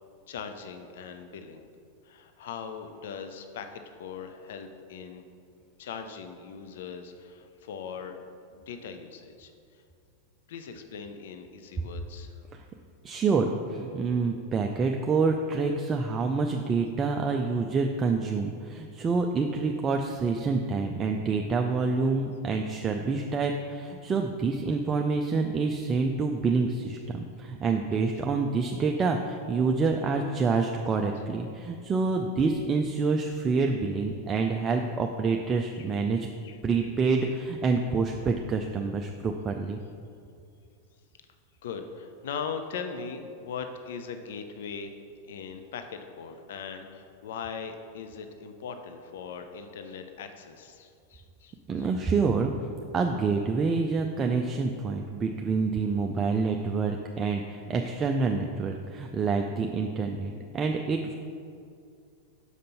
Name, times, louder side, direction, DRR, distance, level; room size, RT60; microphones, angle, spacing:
voice 1, 0.3-1.6 2.0-5.2 5.8-8.2 8.5-9.5 10.5-12.3 35.8-35.9 36.4-36.6 37.2-37.3 41.6-44.9 45.3-51.9, left 6 dB, 55° left, 7 dB, 0.5 m, -40 dB
voice 2, 13.0-36.3 36.6-39.8 51.7-61.1, right 4 dB, 20° right, 3 dB, 0.4 m, -27 dB
6.4 x 5.2 x 5.6 m, 2.4 s
figure-of-eight pair, 90°, 0 cm